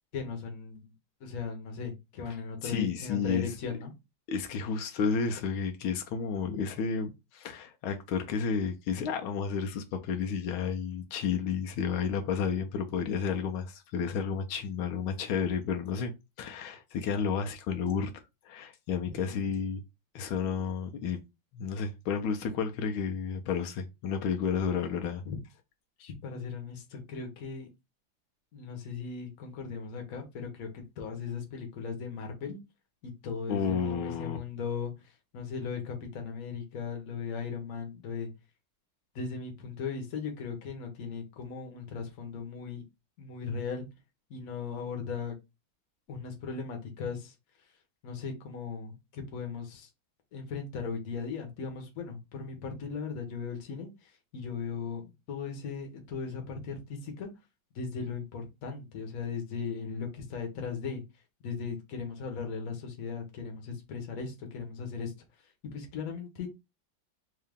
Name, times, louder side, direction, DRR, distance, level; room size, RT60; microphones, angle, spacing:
voice 1, 0.1-0.9 1.2-3.9 19.1-19.5 25.2-25.4 26.0-27.7 28.5-32.6 33.0-38.3 39.1-42.8 43.2-43.9 44.3-45.3 46.1-47.3 48.0-49.9 50.3-57.3 57.7-61.0 61.4-65.1 65.7-66.5, left 5 dB, 50° left, 1.2 m, -38 dB
voice 2, 2.6-3.5 4.3-16.1 16.4-18.1 18.5-19.8 20.1-21.2 21.5-25.2 33.5-34.4, left 6 dB, 85° left, 1.5 m, -31 dB
3.7 x 2.8 x 3.4 m
omnidirectional pair, 2.2 m